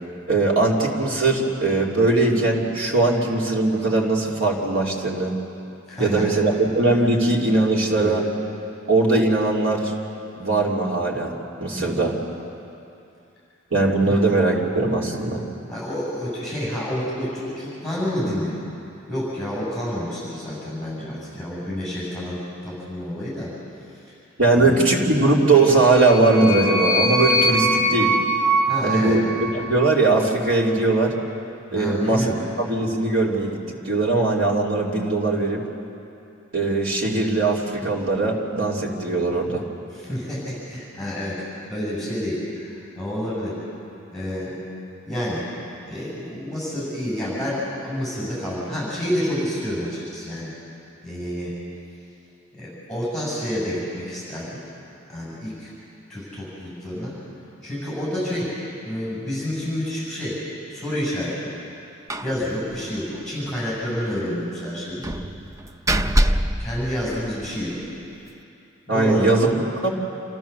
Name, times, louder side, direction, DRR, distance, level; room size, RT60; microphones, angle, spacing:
voice 1, 0.3-5.3 6.0-8.2 8.9-9.9 10.4-11.3 11.6-12.2 13.7-15.4 24.4-28.2 28.8-29.2 29.5-31.1 31.7-32.3 32.6-35.6 36.5-39.6 68.9-69.9, right 2 dB, 80° right, -3 dB, 3.1 m, -20 dB
voice 2, 5.9-6.3 7.9-8.2 11.8-12.1 14.0-14.2 15.7-18.6 19.1-23.5 24.5-24.8 28.7-29.2 31.7-32.4 39.9-43.5 44.1-44.6 45.1-45.4 45.9-50.5 51.0-51.5 52.5-54.5 55.1-55.7 56.1-57.1 57.6-58.5 58.8-60.4 60.7-61.5 62.2-65.0 66.6-67.8 68.9-69.3, left 1 dB, 5° left, -6 dB, 7.3 m, -29 dB
sound 1, 25.7-30.0, right 1 dB, 25° left, 2.7 m, -23 dB
Slam, 62.1-62.4 62.7-62.8 63.1-63.2 65.0-67.6, right 1 dB, 15° right, 0.5 m, -24 dB
28.0 x 14.5 x 7.0 m, 2.7 s
head